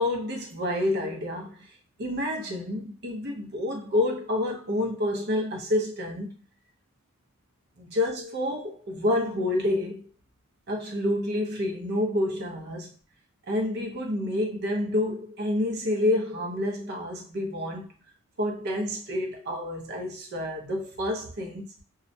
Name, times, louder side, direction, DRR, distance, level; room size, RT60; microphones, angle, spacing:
voice 1, 0.0-1.6 2.0-6.3 7.8-10.0 10.7-12.9 13.5-17.9 18.4-21.7, left 1 dB, 50° right, 0.6 m, -28 dB
2.3 x 2.0 x 2.6 m
head